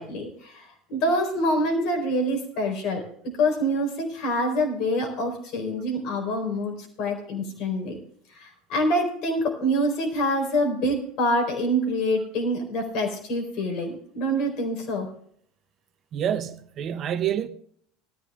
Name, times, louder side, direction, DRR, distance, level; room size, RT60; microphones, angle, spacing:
voice 1, 0.0-8.0 8.3-15.1, equal, 55° left, 4.1 m, -26 dB
voice 2, 16.1-17.5, right 9 dB, 40° right, 0.8 m, -27 dB
19.5 x 13.5 x 2.4 m
figure-of-eight pair, 75°, 0 cm